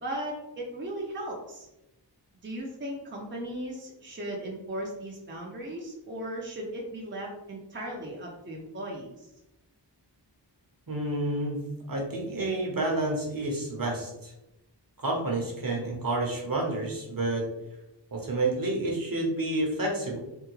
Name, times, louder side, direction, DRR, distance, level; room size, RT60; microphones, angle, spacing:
voice 1, 0.0-1.7 2.4-9.3, right 1 dB, 25° right, -3 dB, 0.7 m, -37 dB
voice 2, 10.9-11.6 11.9-14.3 15.0-17.5 18.1-20.2, right 2 dB, 50° right, 0 dB, 1.0 m, -29 dB
3.5 x 2.2 x 3.1 m, 0.93 s
wide cardioid pair, 55°, 44 cm